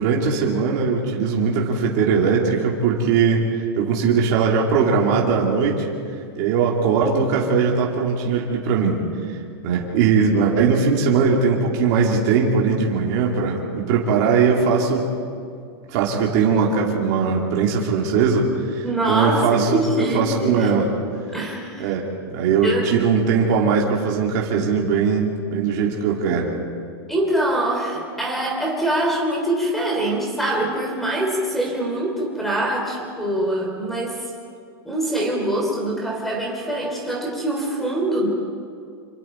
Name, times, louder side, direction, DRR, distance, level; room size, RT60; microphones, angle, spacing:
voice 1, 0.0-5.9 6.4-9.0 9.3-9.4 9.6-15.1 15.9-20.9 21.8-26.5, right 5 dB, 40° right, -2 dB, 2.7 m, -20 dB
voice 2, 18.8-20.8 21.3-21.8 22.6-22.8 27.1-34.2 34.8-38.3, right 1 dB, ahead, 0 dB, 3.4 m, -24 dB
27.0 x 26.5 x 4.5 m, 2.3 s
supercardioid pair, 175°, 13 cm